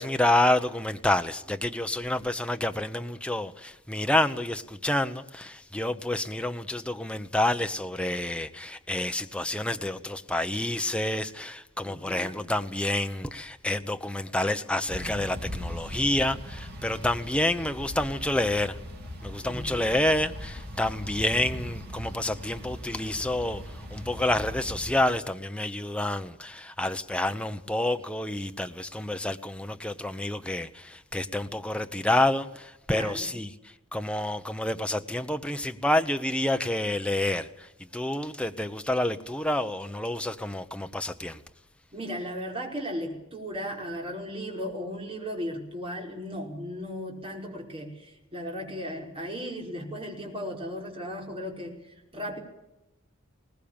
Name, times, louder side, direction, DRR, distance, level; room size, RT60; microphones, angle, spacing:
voice 1, 0.0-18.8 19.2-41.4, left 1 dB, 5° left, 0.9 m, -28 dB
voice 2, 11.8-12.4 19.4-20.0 32.9-33.3 41.9-52.4, equal, 25° right, 5.1 m, -36 dB
sound 1, 14.9-24.9, equal, 50° right, 4.1 m, -39 dB
21.0 x 19.0 x 8.8 m
head